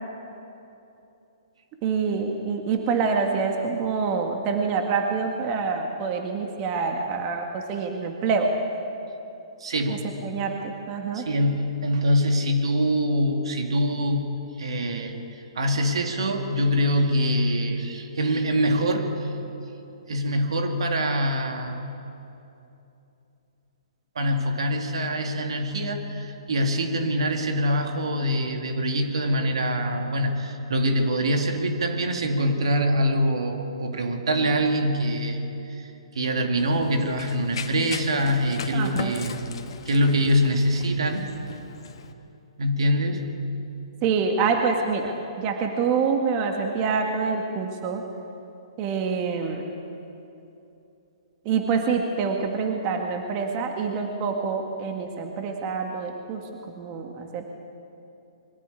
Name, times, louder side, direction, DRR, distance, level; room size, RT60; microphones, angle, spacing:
voice 1, 1.8-8.5 9.9-10.5 10.9-11.2 38.7-39.1 44.0-48.0 48.8-49.6 51.5-56.4 56.8-57.5, right 5 dB, 35° right, 3 dB, 1.9 m, -26 dB
voice 2, 9.6-10.1 11.1-15.2 15.5-19.3 20.1-21.8 24.1-35.4 35.7-35.9 36.1-39.5 39.9-41.3 42.6-43.2, equal, 70° right, 4 dB, 2.6 m, -24 dB
Run, 36.5-42.1, left 6 dB, 60° left, 1.6 m, -38 dB
23.0 x 15.5 x 8.4 m, 2.8 s
figure-of-eight pair, 125°, 3 cm